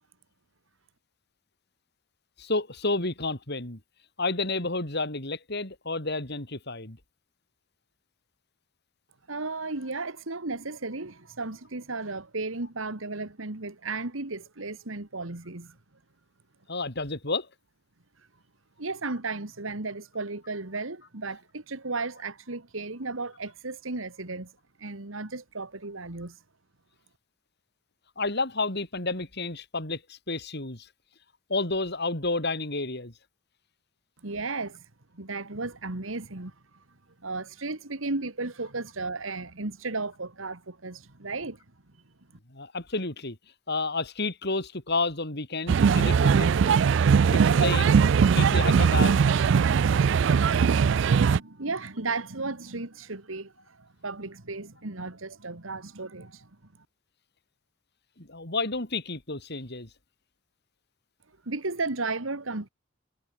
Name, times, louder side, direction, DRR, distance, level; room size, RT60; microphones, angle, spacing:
voice 1, 2.4-3.8 4.2-7.0 16.7-17.5 28.2-30.9 31.5-33.1 42.5-43.4 43.7-46.8 47.3-48.0 48.3-49.2 58.2-59.9, left 3 dB, 55° left, 4.4 m, -30 dB
voice 2, 9.3-15.8 18.8-24.5 24.8-26.4 34.2-34.9 35.1-36.5 37.2-41.6 51.2-56.5 61.5-62.7, right 3 dB, 80° right, 2.1 m, -34 dB
sound 1, 45.7-51.4, right 6 dB, 60° right, 0.4 m, -20 dB
head